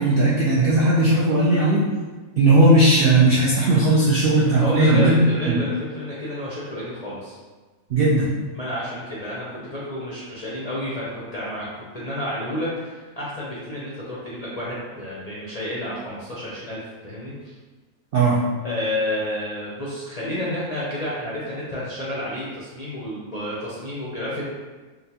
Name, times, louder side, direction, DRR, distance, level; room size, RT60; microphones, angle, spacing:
voice 1, 0.0-1.8 2.4-5.6 7.9-8.3 18.1-18.4, right 2 dB, 65° right, -6 dB, 0.5 m, -17 dB
voice 2, 4.6-7.4 8.5-17.5 18.6-24.4, left 1 dB, 45° left, -8 dB, 0.5 m, -30 dB
4.0 x 2.3 x 2.7 m, 1.3 s
omnidirectional pair, 1.5 m